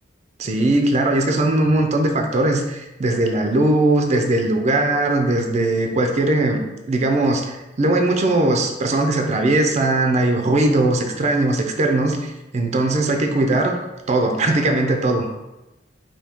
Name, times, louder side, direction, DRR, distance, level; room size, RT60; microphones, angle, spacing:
voice 1, 0.4-13.8 14.1-15.3, right 2 dB, 35° right, 4 dB, 0.4 m, -19 dB
4.2 x 2.7 x 3.5 m, 1.0 s
head